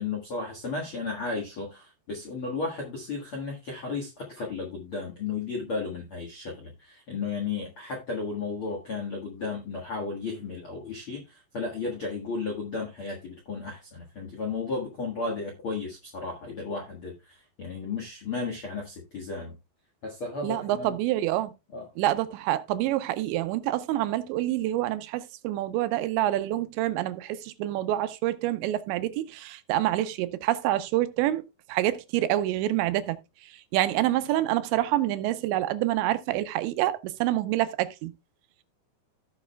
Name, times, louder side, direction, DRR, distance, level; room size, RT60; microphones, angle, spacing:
voice 1, 0.0-19.5 20.0-21.0 21.7-21.9, left 4 dB, 65° left, 1.3 m, -34 dB
voice 2, 20.4-21.5 22.0-33.2 33.7-38.1, right 14 dB, 85° right, 3.0 m, -27 dB
16.5 x 6.0 x 2.2 m
omnidirectional pair, 5.1 m